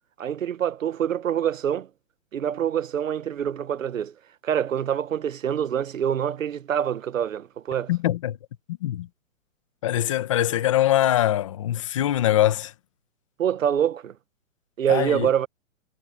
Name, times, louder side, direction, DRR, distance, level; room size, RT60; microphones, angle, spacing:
voice 1, 0.2-1.9 2.3-4.1 4.4-7.9 13.4-14.1 14.8-15.5, right 9 dB, 70° right, 1.2 m, -25 dB
voice 2, 7.9-8.4 8.8-9.1 9.8-12.7 14.9-15.3, left 13 dB, 25° left, 1.1 m, -23 dB
hypercardioid pair, 175°, 41 cm